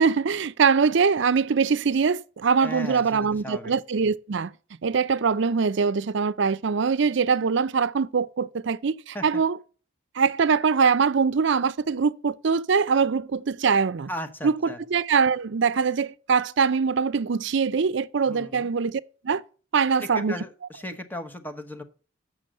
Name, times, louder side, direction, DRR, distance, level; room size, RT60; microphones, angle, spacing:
voice 1, 0.0-4.5 4.8-9.6 10.1-14.1 14.4-19.4 19.7-20.4, right 5 dB, 60° right, 0.5 m, -23 dB
voice 2, 2.6-3.7 9.1-9.4 14.1-14.8 18.3-18.7 20.0-21.8, left 1 dB, 10° left, 0.9 m, -36 dB
7.7 x 6.1 x 7.6 m
head